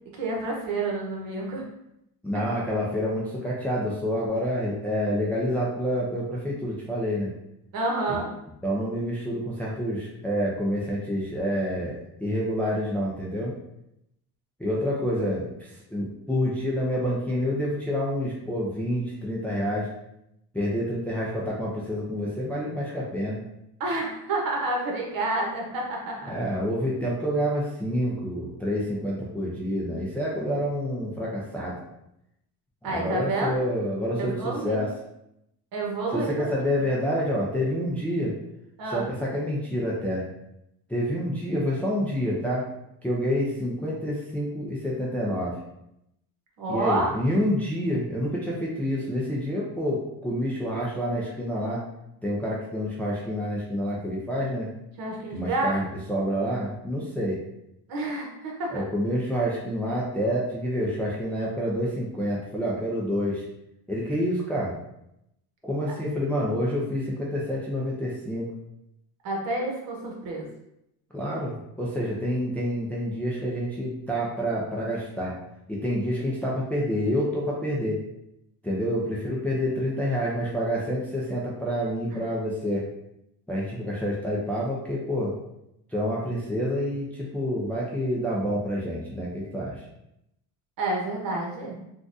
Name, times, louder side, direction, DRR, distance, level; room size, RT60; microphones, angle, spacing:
voice 1, 0.1-1.6 7.7-8.3 23.8-26.3 32.8-33.7 34.2-34.9 35.7-36.7 38.8-39.1 46.6-47.1 55.0-55.7 57.9-58.8 69.2-70.5 82.1-82.2 90.8-91.8, right 2 dB, 60° right, -1 dB, 1.0 m, -29 dB
voice 2, 2.2-7.3 8.1-8.2 8.6-13.5 14.6-19.9 20.5-23.4 26.3-31.8 32.8-34.9 36.1-38.3 38.9-40.2 40.9-42.6 43.0-45.5 46.7-51.8 52.2-54.7 55.3-57.4 58.7-63.4 63.9-64.7 65.6-68.5 71.1-75.3 75.7-78.0 78.6-82.8 83.5-85.3 85.9-89.8, equal, 5° left, -5 dB, 0.4 m, -28 dB
3.8 x 2.4 x 2.5 m, 0.82 s
cardioid pair, 140°, 39 cm